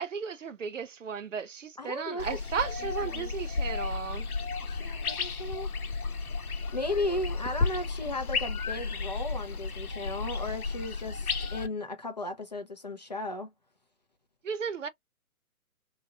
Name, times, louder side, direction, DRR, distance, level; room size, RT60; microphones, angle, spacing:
voice 1, 0.0-4.3 14.4-14.9, right 6 dB, 55° right, 0.6 m, -35 dB
voice 2, 1.8-2.4 3.1-3.3 4.6-5.7 6.7-13.5, left 2 dB, 30° left, 0.5 m, -35 dB
sound 1, 2.2-11.7, left 4 dB, 75° left, 0.8 m, -33 dB
2.8 x 2.2 x 2.7 m
figure-of-eight pair, 130°, 44 cm